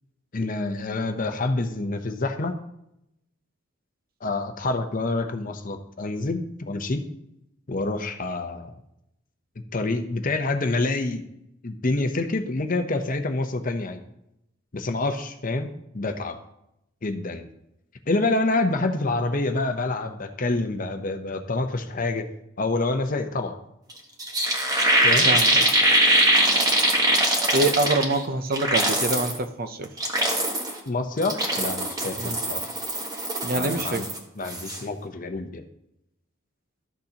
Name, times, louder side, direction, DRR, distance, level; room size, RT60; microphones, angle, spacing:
voice 1, 0.3-2.6 4.2-7.0 7.7-8.8 9.7-11.2 11.6-14.0 14.7-16.4 17.0-17.5 18.1-22.2 22.6-23.6 25.0-25.3 30.9-32.6 33.5-34.1 34.4-35.6, left 2 dB, 40° left, 7 dB, 0.7 m, -27 dB
sound 1, 23.9-24.0 24.2-28.2 28.5-29.4 29.8-30.8 31.2-34.2 34.4-34.8, right 1 dB, 15° right, 1.2 m, -22 dB
voice 2, 25.2-25.7 27.5-29.9 32.2-32.4 33.4-34.1, right 2 dB, 45° right, 9 dB, 0.6 m, -25 dB
13.0 x 6.6 x 2.9 m, 0.82 s
head